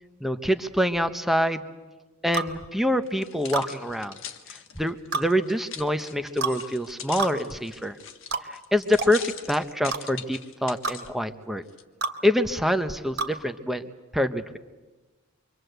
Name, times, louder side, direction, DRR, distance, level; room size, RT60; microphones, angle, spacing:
voice 1, 0.2-1.6 2.2-4.2 4.7-8.0 8.4-11.6 12.2-13.8 14.1-14.6, equal, ahead, 8 dB, 1.0 m, -26 dB
sound 1, 2.3-2.5 3.5-3.7 5.1-5.3 6.4-6.6 7.2-7.4 8.3-8.5 9.0-9.1 9.9-10.0 10.8-11.0 12.0-12.2 13.2-13.3, right 4 dB, 50° right, 2.0 m, -28 dB
sound 2, 3.1-11.1 11.7-11.8, left 8 dB, 65° left, 1.5 m, -41 dB
26.5 x 24.5 x 8.1 m, 1.2 s
head